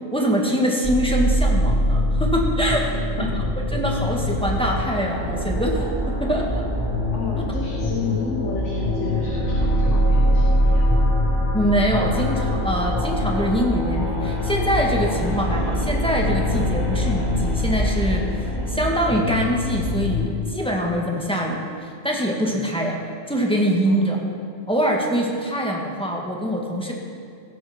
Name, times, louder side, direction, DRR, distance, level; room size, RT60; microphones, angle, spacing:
voice 1, 0.1-2.9 3.7-6.6 7.3-7.4 11.5-18.3 18.7-23.0 23.3-24.2 24.7-26.9, equal, 5° left, -1 dB, 1.8 m, -24 dB
sound 1, 0.8-20.2, left 1 dB, 30° right, 3.9 m, -23 dB
voice 2, 7.1-11.1 23.9-24.4, left 3 dB, 70° left, -2 dB, 1.9 m, -32 dB
17.0 x 13.5 x 4.4 m, 2.3 s
omnidirectional pair, 1.3 m